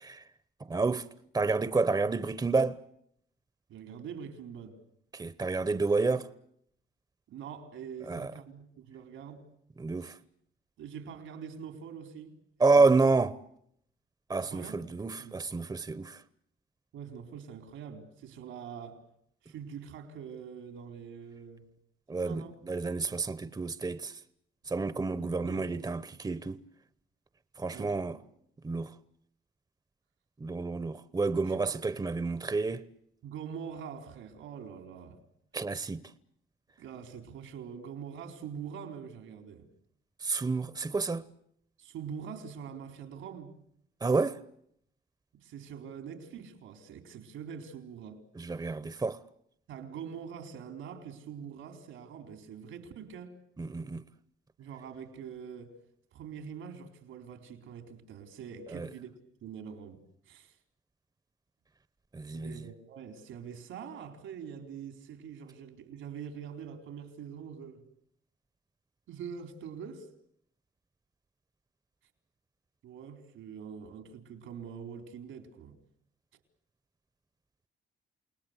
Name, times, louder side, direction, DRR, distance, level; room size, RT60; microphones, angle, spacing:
voice 1, 0.7-1.0 1.3-2.8 5.1-6.3 8.1-8.3 9.8-10.1 12.6-13.4 14.3-16.2 22.1-24.1 24.7-26.6 27.6-28.2 28.6-28.9 30.4-32.9 35.5-36.0 40.2-41.2 44.0-44.4 48.4-49.2 53.6-54.0 58.7-58.9 62.1-62.6, right 3 dB, 20° right, 1.0 m, -29 dB
voice 2, 3.7-4.8 7.3-9.5 10.0-10.2 10.8-12.4 12.7-13.0 14.4-14.9 15.2-15.4 16.9-19.0 19.4-21.7 22.1-22.5 25.2-25.7 27.7-28.2 31.3-31.8 33.2-35.2 36.8-39.7 41.8-43.5 45.3-48.2 48.6-48.7 49.7-53.4 54.6-55.8 56.1-59.1 59.4-60.5 62.3-67.9 69.1-70.1 72.8-75.8, right 7 dB, 85° right, 4.2 m, -44 dB
29.0 x 19.5 x 8.2 m
cardioid pair, 90°, 20 cm